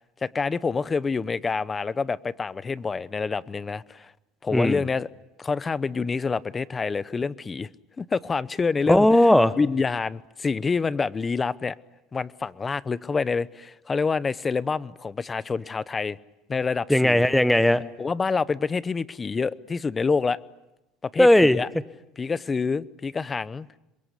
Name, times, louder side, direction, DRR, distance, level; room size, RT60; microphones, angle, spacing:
voice 1, 0.2-4.1 4.4-5.1 5.4-7.7 8.0-9.1 9.6-11.7 12.1-16.2 16.5-17.3 18.0-20.4 21.0-21.7 22.2-23.7, left 4 dB, 20° left, 18 dB, 0.9 m, -27 dB
voice 2, 4.5-4.8 8.9-9.5 16.9-17.8 21.2-21.6, left 1 dB, 5° left, 14 dB, 1.2 m, -17 dB
27.5 x 23.0 x 8.3 m, 0.93 s
supercardioid pair, 110°, 0 cm